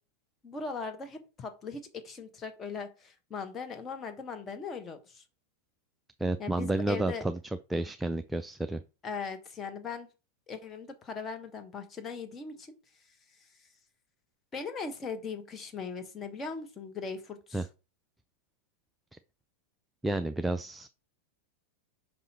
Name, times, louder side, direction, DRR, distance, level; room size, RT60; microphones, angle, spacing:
voice 1, 0.4-5.2 6.4-7.2 9.0-10.1 10.5-12.8 13.3-13.7 14.5-17.7, left 5 dB, 20° left, 7 dB, 1.2 m, -39 dB
voice 2, 6.2-7.4 7.7-8.8 17.5-17.6 20.0-20.9, right 2 dB, 5° right, 10 dB, 0.4 m, -30 dB
5.5 x 5.4 x 4.4 m, 0.32 s
figure-of-eight pair, 90°, 0 cm